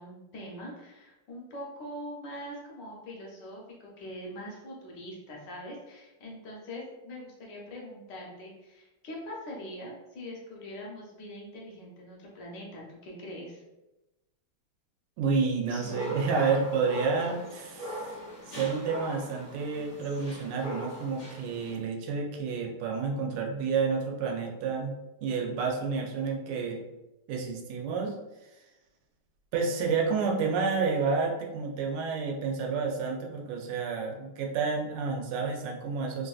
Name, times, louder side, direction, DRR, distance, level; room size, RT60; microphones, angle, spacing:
voice 1, 0.0-13.6, equal, 65° left, -2 dB, 1.2 m, -43 dB
voice 2, 15.2-18.2 18.5-24.9 25.2-26.8 27.3-28.2 29.5-36.3, right 5 dB, 85° right, 1 dB, 1.5 m, -30 dB
sound 1, 15.7-21.7, equal, 85° left, 0.5 m, -40 dB
3.5 x 2.5 x 2.3 m, 1.0 s
omnidirectional pair, 2.4 m